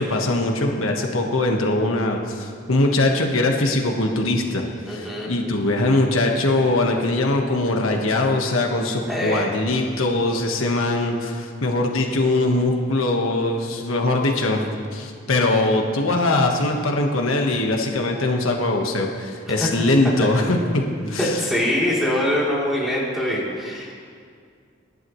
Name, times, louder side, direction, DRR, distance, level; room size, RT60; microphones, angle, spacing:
voice 1, 0.0-21.4, left 2 dB, 85° left, 1 dB, 1.5 m, -21 dB
voice 2, 4.9-5.3 9.1-9.5 19.6-19.7 21.2-23.9, left 1 dB, ahead, -7 dB, 3.3 m, -23 dB
30.0 x 11.0 x 3.2 m, 2.2 s
head